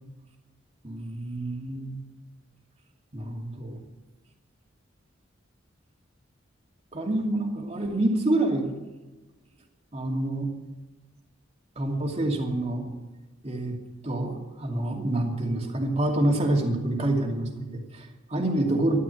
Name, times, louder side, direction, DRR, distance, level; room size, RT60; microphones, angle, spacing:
voice 1, 0.8-2.0 3.1-3.8 6.9-8.7 9.9-10.5 11.8-12.9 13.4-13.8 14.0-19.0, right 1 dB, 35° right, 1 dB, 2.6 m, -27 dB
12.5 x 12.5 x 9.0 m, 1.2 s
head